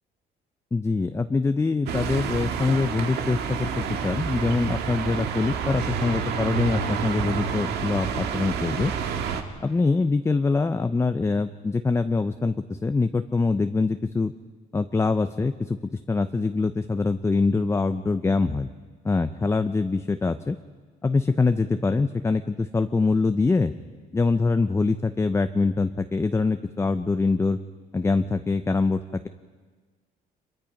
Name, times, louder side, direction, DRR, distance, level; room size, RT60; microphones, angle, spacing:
voice 1, 0.7-8.9 9.6-14.3 14.7-15.8 16.1-18.7 19.0-20.6 21.0-23.7 24.1-27.6 27.9-29.3, left 3 dB, 15° left, 9 dB, 0.6 m, -24 dB
sound 1, 1.9-9.4, right 6 dB, 75° right, 1.9 m, -29 dB
25.0 x 22.5 x 5.3 m, 1.4 s
cardioid pair, 110°, 17 cm